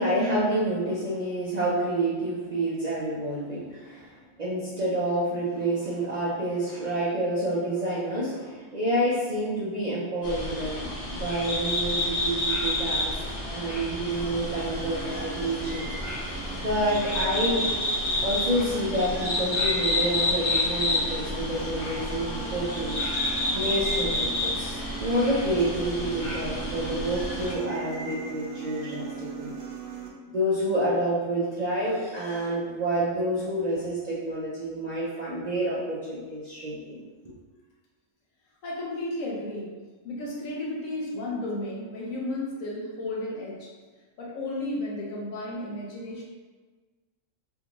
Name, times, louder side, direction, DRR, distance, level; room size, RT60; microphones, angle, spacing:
voice 1, 0.0-4.1 4.4-13.1 13.5-15.9 16.6-17.6 18.2-23.0 23.5-29.1 29.4-29.5 30.3-37.0, right 1 dB, 50° right, -9 dB, 0.5 m, -28 dB
sound 1, 10.2-27.5, left 1 dB, 45° left, 1.0 m, -29 dB
sound 2, 14.1-30.1, right 5 dB, 85° right, 1.0 m, -40 dB
voice 2, 38.6-39.7 40.0-43.7 44.2-46.2, left 1 dB, 75° left, -3 dB, 1.1 m, -33 dB
3.4 x 2.4 x 2.9 m, 1.3 s
omnidirectional pair, 1.4 m